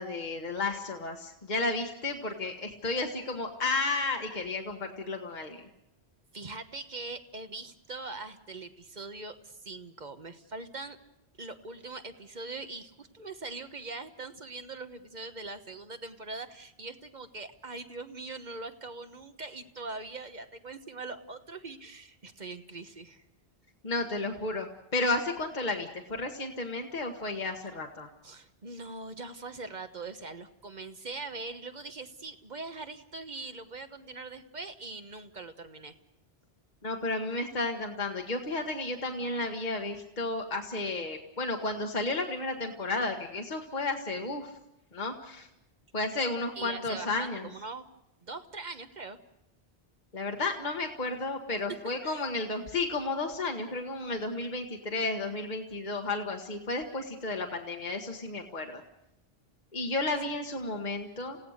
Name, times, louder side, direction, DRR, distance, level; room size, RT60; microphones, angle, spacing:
voice 1, 0.0-5.6 23.8-24.7 24.9-28.1 36.8-44.5 44.9-45.5 45.9-47.5 50.1-58.8 59.7-61.4, left 2 dB, 45° left, 2 dB, 1.6 m, -32 dB
voice 2, 6.3-11.0 11.4-23.2 28.2-35.9 46.5-47.8 48.2-49.2 52.0-52.3, right 3 dB, 45° right, 8 dB, 1.3 m, -42 dB
29.0 x 16.5 x 6.5 m, 0.88 s
omnidirectional pair, 1.1 m